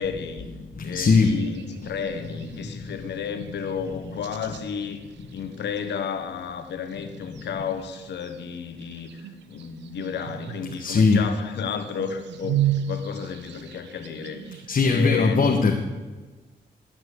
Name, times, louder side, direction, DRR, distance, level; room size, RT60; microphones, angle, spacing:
voice 1, 0.0-0.5 0.8-5.0 5.3-12.6 12.9-14.6 14.8-15.6, left 6 dB, 75° left, 7 dB, 1.3 m, -32 dB
voice 2, 0.5-1.4 1.8-3.1 4.0-4.1 7.0-7.1 7.5-7.7 10.8-11.3 14.7-15.7, left 4 dB, 50° left, 2 dB, 1.3 m, -22 dB
sound 1, 1.0-14.7, right 10 dB, 85° right, 0.8 m, -35 dB
12.0 x 6.0 x 8.0 m, 1.3 s
supercardioid pair, 55°, 18 cm